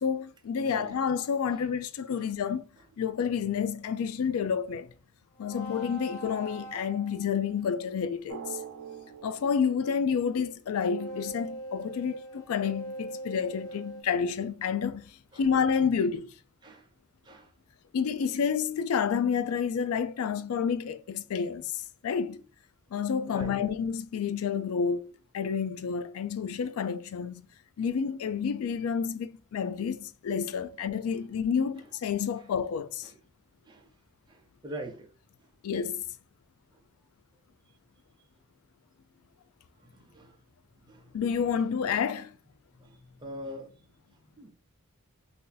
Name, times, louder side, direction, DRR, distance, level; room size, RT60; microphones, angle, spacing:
voice 1, 0.0-2.6 3.0-4.9 5.4-8.6 9.2-16.3 17.9-22.4 22.9-27.4 27.8-33.1 35.6-36.0 41.1-42.3, left 6 dB, 70° left, 0.3 m, -29 dB
voice 2, 0.7-1.0 15.3-15.4 16.6-16.9 17.2-17.5 23.3-23.6 33.0-33.2 33.7-33.9 34.3-35.1 39.8-40.4 40.9-41.2 42.8-44.5, right 1 dB, 20° right, 0.5 m, -43 dB
sound 1, 5.4-7.6 10.8-14.0, right 1 dB, 90° left, 0.9 m, -42 dB
Drum, 8.3-10.9, right 8 dB, 70° right, 0.6 m, -44 dB
2.6 x 2.5 x 3.8 m
head